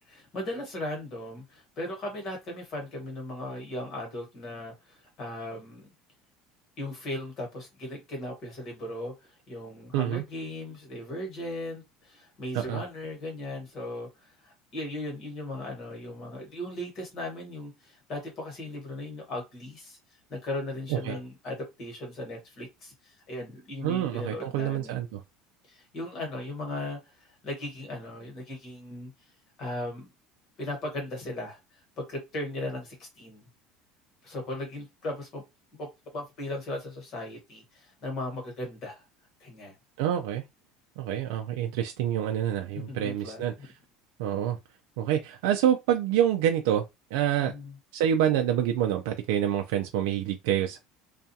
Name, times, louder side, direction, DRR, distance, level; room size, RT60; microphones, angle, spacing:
voice 1, 0.1-5.9 6.8-20.0 20.3-25.1 25.7-29.1 29.6-30.1 30.6-31.6 32.0-33.5 34.2-35.4 35.8-35.9 36.1-39.0 39.4-39.8 42.7-43.7 47.4-47.7, left 1 dB, 35° left, 1.3 m, -37 dB
voice 2, 9.9-10.2 12.5-12.8 20.9-21.2 23.8-25.2 40.0-40.4 41.0-43.5 44.2-44.6 45.0-46.8 47.1-47.5 47.9-50.8, right 10 dB, 80° right, 0.4 m, -27 dB
2.3 x 2.3 x 2.7 m
cardioid pair, 165°, 0 cm